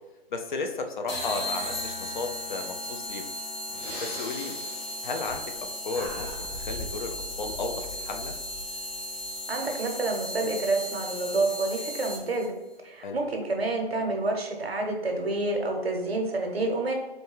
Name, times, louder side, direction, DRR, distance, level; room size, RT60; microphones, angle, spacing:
voice 1, 0.3-3.3 4.0-4.6 5.0-8.3 13.0-13.2, left 3 dB, 55° left, 5 dB, 0.6 m, -34 dB
sound 1, 1.1-12.5, left 1 dB, 75° left, 1.4 m, -36 dB
Breathing, 3.7-5.6 5.9-7.0, equal, 25° left, 1.1 m, -41 dB
sound 2, 6.1-10.4, left 2 dB, 5° right, 0.6 m, -44 dB
voice 2, 9.5-12.5 12.8-16.9, right 2 dB, 90° right, 2 dB, 1.0 m, -28 dB
4.1 x 2.3 x 3.2 m, 1.1 s
figure-of-eight pair, 145°, 30 cm